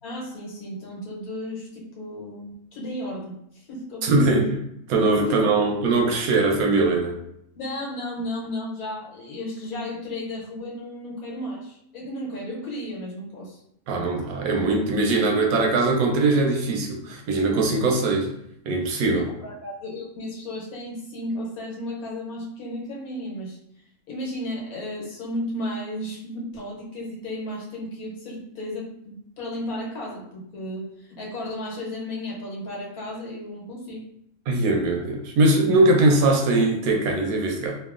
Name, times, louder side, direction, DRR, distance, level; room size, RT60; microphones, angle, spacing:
voice 1, 0.0-4.5 5.3-5.7 7.5-13.6 19.0-23.6 24.1-34.0, left 1 dB, 90° left, -3 dB, 1.4 m, -34 dB
voice 2, 4.0-4.5 4.9-7.2 13.9-18.3 18.7-19.2 34.5-37.8, right 2 dB, 80° right, 1 dB, 1.1 m, -21 dB
2.9 x 2.3 x 2.4 m, 0.75 s
omnidirectional pair, 1.5 m